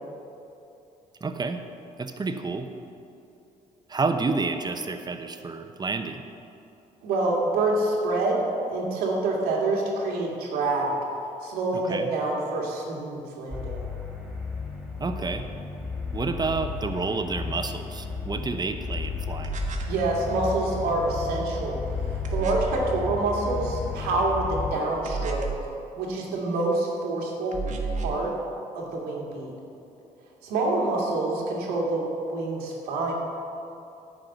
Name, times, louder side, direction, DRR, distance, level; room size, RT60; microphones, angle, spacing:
voice 1, 1.2-1.6 2.0-2.7 3.9-6.3 11.7-12.1 15.0-15.5 16.1-19.6, right 4 dB, 25° right, 7 dB, 0.9 m, -29 dB
voice 2, 7.0-10.9 11.4-13.8 19.8-27.6 27.9-28.3 28.7-29.5 30.4-33.1, right 2 dB, 85° right, -2 dB, 2.0 m, -27 dB
sound 1, 13.5-24.8, left 4 dB, 5° left, 2.3 m, -33 dB
sound 2, 19.4-20.0 22.2-22.8 25.0-25.7 27.5-28.2, right 3 dB, 55° right, 1.4 m, -31 dB
10.5 x 4.8 x 7.9 m, 2.7 s
supercardioid pair, 70°, 15 cm